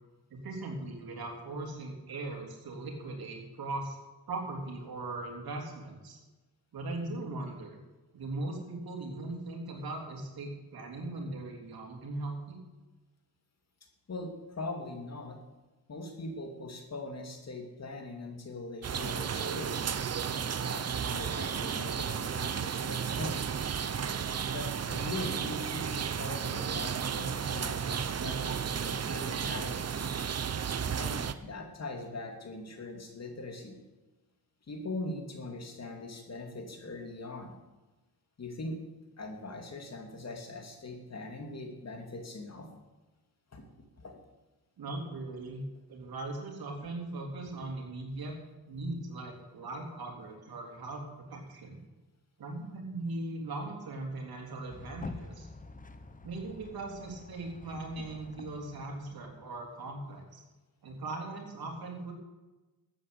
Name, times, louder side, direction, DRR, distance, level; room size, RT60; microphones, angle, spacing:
voice 1, 0.3-4.0 4.3-6.2 6.7-7.8 8.1-12.6 44.8-45.6 45.9-48.4 48.7-51.8 52.4-55.5 56.2-60.4 60.8-62.1, right 2 dB, 80° right, 1 dB, 3.6 m, -39 dB
voice 2, 14.1-15.4 15.9-19.9 20.6-23.7 24.5-30.1 30.9-33.8 34.7-37.6 38.4-38.8 39.2-42.7 43.5-43.6 44.0-44.1, left 2 dB, 45° left, 3 dB, 2.9 m, -41 dB
sound 1, 18.8-31.3, right 7 dB, 45° right, 0.9 m, -33 dB
sound 2, 54.7-59.5, left 3 dB, 20° left, 1.1 m, -47 dB
13.0 x 8.3 x 8.5 m, 1.1 s
cardioid pair, 95°, 36 cm